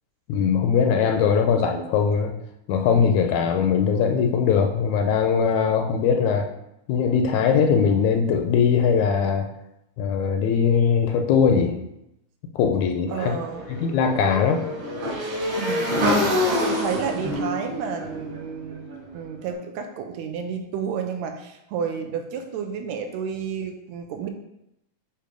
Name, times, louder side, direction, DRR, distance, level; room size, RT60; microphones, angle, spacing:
voice 1, 0.3-2.3 2.7-6.5 6.9-9.5 10.0-11.9 12.6-13.4 13.8-14.6, left 6 dB, 80° left, 4 dB, 1.8 m, -20 dB
Motorcycle / Engine, 13.1-19.2, left 1 dB, 55° right, 2.1 m, -26 dB
voice 2, 13.1-13.7 15.6-24.3, right 7 dB, 80° right, 4 dB, 1.7 m, -31 dB
6.7 x 2.8 x 5.0 m, 0.84 s
omnidirectional pair, 3.4 m